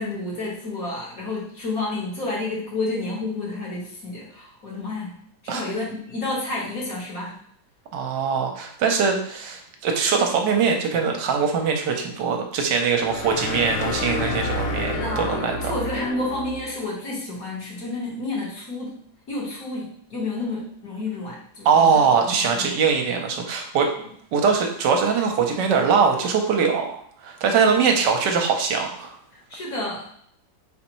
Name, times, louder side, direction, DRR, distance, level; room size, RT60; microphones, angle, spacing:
voice 1, 0.0-5.1 5.4-7.3 14.9-18.9 19.3-21.7 22.3-22.7 29.5-30.0, left 2 dB, 55° left, -5 dB, 1.7 m, -30 dB
voice 2, 7.9-15.8 21.6-23.9 24.3-29.1, right 5 dB, 75° right, 3 dB, 1.3 m, -22 dB
sound 1, 12.9-16.7, left 2 dB, 80° left, 0.6 m, -29 dB
4.3 x 3.9 x 3.0 m, 0.64 s
omnidirectional pair, 1.9 m